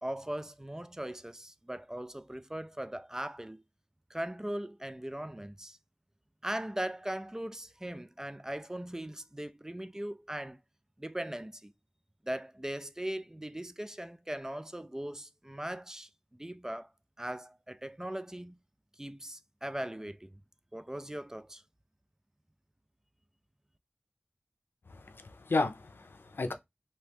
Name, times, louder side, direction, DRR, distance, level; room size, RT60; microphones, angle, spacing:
voice 1, 0.0-3.6 4.1-5.8 6.4-10.6 11.0-11.7 12.2-16.9 17.2-18.6 19.0-20.3 20.7-21.6, right 1 dB, 15° right, 0.3 m, -39 dB
voice 2, 24.9-26.5, left 3 dB, 85° left, 0.5 m, -33 dB
3.0 x 2.8 x 3.4 m
wide cardioid pair, 45°, 4 cm